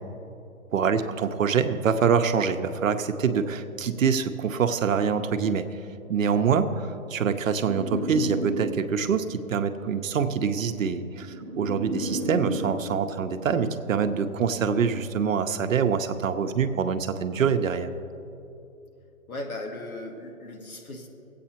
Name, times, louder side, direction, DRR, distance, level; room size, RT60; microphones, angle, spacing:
voice 1, 0.7-5.7 6.1-17.9, right 6 dB, 65° right, 8 dB, 0.8 m, -25 dB
sound 1, 7.7-9.2 10.2-12.9, right 1 dB, 20° right, 1.0 m, -33 dB
voice 2, 19.3-21.1, left 2 dB, 90° left, 1 dB, 1.8 m, -37 dB
23.0 x 8.5 x 2.9 m, 2.8 s
hypercardioid pair, 150°, 42 cm